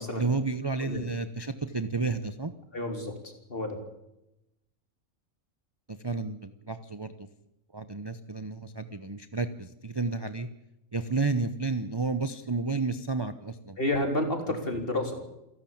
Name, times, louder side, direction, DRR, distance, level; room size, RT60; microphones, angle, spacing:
voice 1, 0.1-2.5 5.9-7.3 7.7-10.5 10.9-13.8 14.5-14.6, right 3 dB, 20° right, 11 dB, 0.8 m, -31 dB
voice 2, 2.7-3.1 3.5-3.8 13.8-15.2, left 1 dB, 40° left, 4 dB, 4.1 m, -30 dB
28.5 x 12.0 x 8.7 m, 0.88 s
omnidirectional pair, 1.5 m